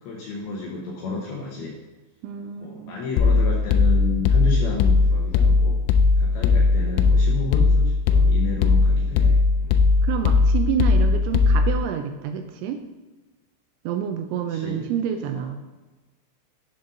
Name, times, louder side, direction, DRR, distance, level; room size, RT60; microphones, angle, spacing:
voice 1, 0.0-1.7 2.6-5.8 6.2-9.8 14.5-15.5, left 4 dB, 75° left, -3 dB, 2.4 m, -32 dB
voice 2, 2.2-3.0 10.0-12.8 13.8-15.6, right 8 dB, 85° right, 6 dB, 2.8 m, -28 dB
sound 1, 3.2-11.8, left 4 dB, 90° left, 2.5 m, -18 dB
11.0 x 7.0 x 2.6 m, 1.2 s
omnidirectional pair, 5.7 m